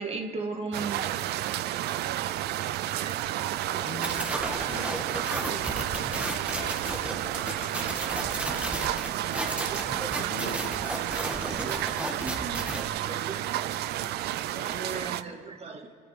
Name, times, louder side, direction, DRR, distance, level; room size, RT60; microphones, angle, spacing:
voice 1, 0.0-1.9 3.0-3.2 3.5-4.1 7.7-8.0 9.3-10.3 11.1-12.7 13.0-13.6 14.5-16.0, right 4 dB, 35° right, 4 dB, 1.9 m, -39 dB
sound 1, 0.7-15.2, right 13 dB, 75° right, 0.6 m, -31 dB
voice 2, 3.8-8.9 9.4-10.9, left 5 dB, 55° left, 6 dB, 1.4 m, -45 dB
sound 2, 4.0-12.8, right 1 dB, 5° right, 1.8 m, -34 dB
26.5 x 10.0 x 5.1 m, 2.2 s
cardioid pair, 110°, 17 cm